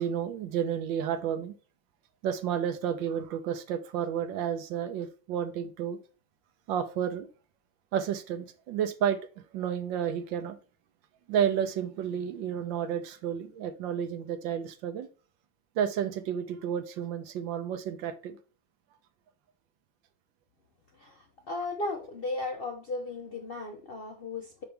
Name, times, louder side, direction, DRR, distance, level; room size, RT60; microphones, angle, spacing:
voice 1, 0.0-1.5 2.2-6.0 6.7-7.3 7.9-9.2 9.5-10.6 11.3-15.1 15.8-18.4, right 8 dB, 75° right, 1.5 m, -31 dB
voice 2, 21.0-24.6, left 2 dB, 75° left, 0.5 m, -36 dB
5.8 x 5.3 x 3.3 m
omnidirectional pair, 2.1 m